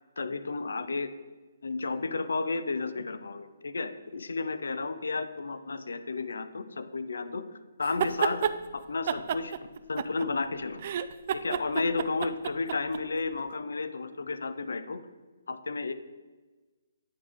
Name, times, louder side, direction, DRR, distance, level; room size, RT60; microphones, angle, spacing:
voice 1, 0.2-1.1 1.6-7.4 7.8-9.5 9.9-10.8 11.3-15.0 15.5-15.9, left 3 dB, 85° left, 11 dB, 0.6 m, -32 dB
sound 1, 7.8-8.6 9.1-10.5 10.8-13.0, right 9 dB, 40° right, 0.3 m, -30 dB
9.4 x 4.7 x 3.6 m, 1.3 s
hypercardioid pair, 160°, 0 cm